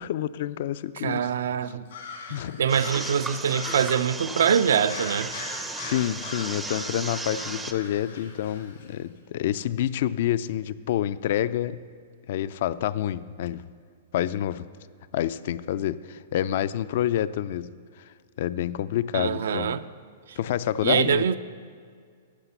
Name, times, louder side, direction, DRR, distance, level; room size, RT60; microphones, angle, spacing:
voice 1, 0.0-1.3 2.3-2.6 5.8-11.9 12.3-13.7 14.1-14.7 15.1-17.7 18.4-19.8 20.4-21.2, left 11 dB, 55° left, 0.3 m, -28 dB
voice 2, 1.0-1.9 2.6-5.3 19.1-19.8 20.3-20.4 20.8-21.4, right 8 dB, 75° right, 0.4 m, -24 dB
sound 1, 1.9-4.2 4.8-8.9, left 4 dB, 75° left, 1.7 m, -40 dB
sound 2, 2.7-7.7, right 3 dB, 10° right, 0.4 m, -35 dB
9.8 x 5.8 x 6.9 m
hypercardioid pair, 150°, 0 cm